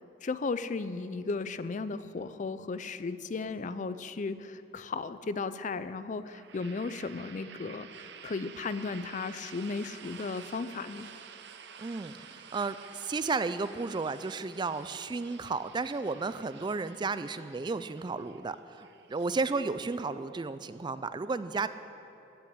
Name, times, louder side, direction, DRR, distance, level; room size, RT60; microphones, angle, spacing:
voice 1, 0.2-7.9 8.2-11.1, left 4 dB, 40° left, 13 dB, 0.4 m, -35 dB
sound 1, 6.2-20.0, right 7 dB, 65° right, 0.7 m, -51 dB
voice 2, 11.8-21.7, right 4 dB, 25° right, 13 dB, 0.3 m, -33 dB
15.5 x 6.0 x 9.7 m, 3.0 s
head